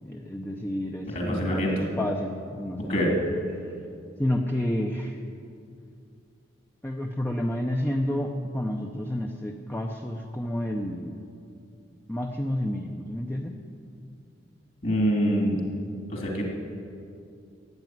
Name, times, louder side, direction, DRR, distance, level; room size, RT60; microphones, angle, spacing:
voice 1, 0.0-3.2 4.2-5.2 6.8-11.2 12.1-13.5, left 1 dB, 10° left, 2 dB, 0.7 m, -30 dB
voice 2, 1.1-1.8 2.9-3.1 14.8-15.7 16.1-16.4, equal, 45° left, -1 dB, 2.8 m, -25 dB
13.5 x 8.3 x 9.3 m, 2.5 s
head